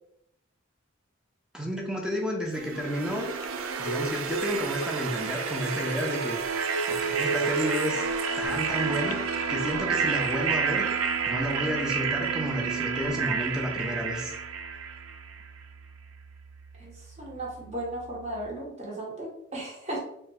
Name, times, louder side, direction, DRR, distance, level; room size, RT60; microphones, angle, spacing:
voice 1, 1.5-3.3 3.8-6.4 6.9-8.1 8.4-9.2 9.5-10.9 11.3-14.4, equal, 5° right, 1 dB, 0.4 m, -31 dB
sound 1, 2.6-15.5, right 5 dB, 85° right, 0.4 m, -30 dB
Telephone, 3.5-3.6 3.9-4.9 5.5-5.6 6.0-6.1 6.6-7.7 8.9-9.5, right 5 dB, 85° left, 0.3 m, -34 dB
sound 2, 8.4-18.5, right 4 dB, 20° left, 0.8 m, -50 dB
voice 2, 16.8-20.0, right 1 dB, 30° right, -3 dB, 0.9 m, -36 dB
3.5 x 2.1 x 3.3 m, 0.77 s
head